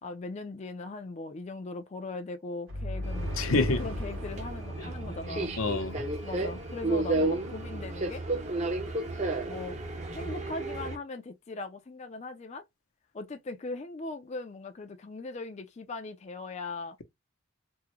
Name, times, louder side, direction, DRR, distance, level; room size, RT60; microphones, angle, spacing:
voice 1, 0.0-5.5 6.2-8.2 9.5-9.8 10.1-12.6 13.1-17.0, left 3 dB, 35° left, 0.4 m, -39 dB
sound 1, 2.7-6.4, left 1 dB, 85° right, 1.7 m, -37 dB
Subway metro underground, 3.0-11.0, right 2 dB, 35° right, 0.7 m, -33 dB
voice 2, 3.4-3.8 4.8-4.9 5.6-6.1, left 3 dB, 85° left, 0.7 m, -28 dB
3.6 x 2.1 x 3.0 m
head